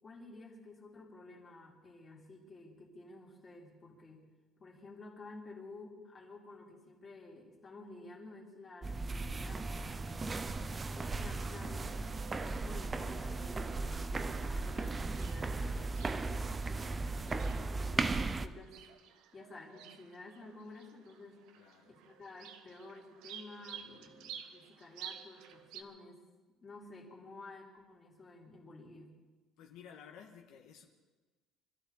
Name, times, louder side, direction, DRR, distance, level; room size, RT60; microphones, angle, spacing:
voice 1, 0.0-4.3 4.6-10.3 10.9-12.1 12.4-16.5 16.7-18.8 19.3-21.4 21.8-26.2 26.6-29.2, left 2 dB, 20° left, -3 dB, 3.2 m, -52 dB
sound 1, 8.8-18.5, right 3 dB, 15° right, 0.5 m, -36 dB
sound 2, 11.8-25.8, right 9 dB, 80° right, 1.2 m, -53 dB
voice 2, 21.5-21.9 29.6-30.9, left 7 dB, 75° left, 1 dB, 1.8 m, -55 dB
25.0 x 14.0 x 4.1 m, 1.3 s
cardioid pair, 170°, 0 cm